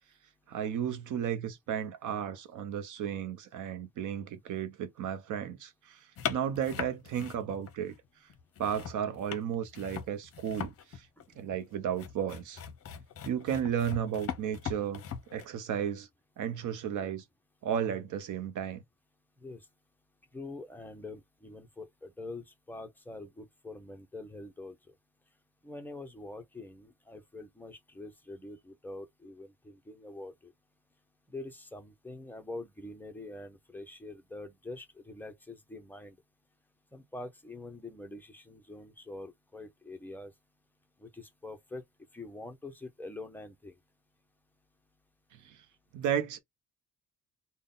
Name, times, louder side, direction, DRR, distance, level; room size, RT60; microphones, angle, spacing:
voice 1, 0.5-7.9 8.6-11.1 11.4-12.6 13.2-15.0 15.3-16.1 16.4-17.2 17.6-18.8 45.3-45.6 45.9-46.4, right 9 dB, 65° right, 0.6 m, -34 dB
sound 1, 6.2-8.0 8.3-15.5, left 8 dB, 45° left, 0.6 m, -40 dB
voice 2, 20.3-24.9 25.6-30.5 31.3-36.2 36.9-40.3 41.0-41.8 42.1-43.7, left 2 dB, 5° left, 0.5 m, -45 dB
3.7 x 2.1 x 3.7 m
cardioid pair, 165°, 32 cm